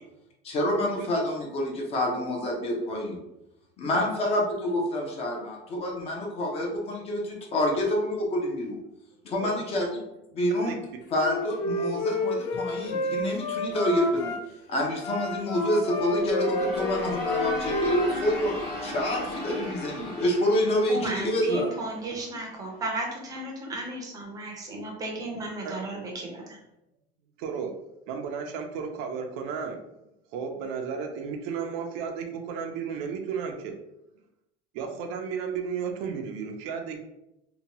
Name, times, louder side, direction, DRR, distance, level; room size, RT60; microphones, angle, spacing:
voice 1, 0.4-3.2 3.8-8.8 9.2-10.0 10.3-10.7 11.1-14.3 14.7-18.5 18.8-21.7, left 1 dB, 30° left, -1 dB, 0.5 m, -27 dB
Wind instrument woodwind instrument, 11.1-14.4 14.9-18.5, left 1 dB, 75° left, 0.5 m, -30 dB
sound 1, 15.7-22.5, left 1 dB, 60° left, 1.1 m, -36 dB
voice 2, 20.9-26.6, right 2 dB, 20° right, 0 dB, 0.5 m, -34 dB
voice 3, 27.4-27.7 28.1-29.8 30.3-33.8 34.7-37.0, right 6 dB, 85° right, 4 dB, 0.5 m, -33 dB
2.8 x 2.2 x 2.8 m, 0.87 s
cardioid pair, 175°, 20 cm